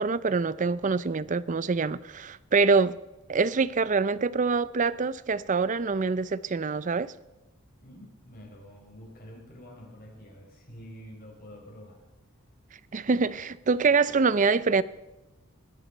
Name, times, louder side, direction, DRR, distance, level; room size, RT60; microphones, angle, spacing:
voice 1, 0.0-3.0 3.3-7.1 12.9-14.8, right 4 dB, 35° right, 0.5 m, -25 dB
voice 2, 7.8-12.0, equal, 45° left, 5.0 m, -47 dB
20.5 x 10.5 x 4.4 m
head